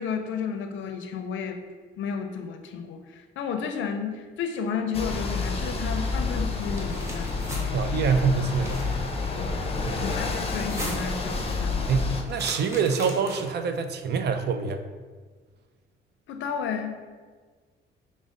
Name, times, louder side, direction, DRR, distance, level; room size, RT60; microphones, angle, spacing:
voice 1, 0.0-1.6 2.0-8.0 9.4-12.0 16.3-17.0, left 6 dB, 75° left, 6 dB, 0.5 m, -33 dB
sound 1, 4.9-12.2, left 3 dB, 30° left, 0.5 m, -29 dB
sound 2, 6.6-7.6 8.4-9.0 10.5-11.2 12.3-13.6, equal, 15° right, 1.0 m, -38 dB
voice 2, 7.7-8.9 9.8-10.2 11.9-14.8, right 6 dB, 55° right, 8 dB, 0.4 m, -26 dB
5.1 x 2.0 x 3.7 m, 1.5 s
cardioid pair, 90°, 20 cm